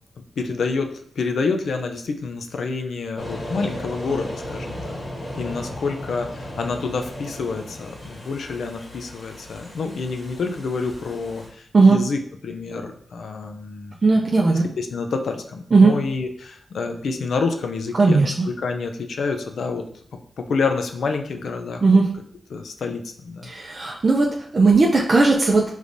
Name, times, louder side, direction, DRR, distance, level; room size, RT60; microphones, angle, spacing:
voice 1, 0.4-5.0 5.3-19.8 20.4-21.8 22.5-23.5, left 4 dB, 80° left, 5 dB, 0.4 m, -28 dB
sound 1, 3.2-11.5, left 1 dB, 55° left, 1.8 m, -36 dB
voice 2, 14.0-14.7 15.7-15.9 18.0-18.3 21.8-22.0 23.4-25.6, right 3 dB, 45° right, -1 dB, 0.5 m, -16 dB
5.1 x 3.2 x 2.6 m, 0.64 s
wide cardioid pair, 95°, 0 cm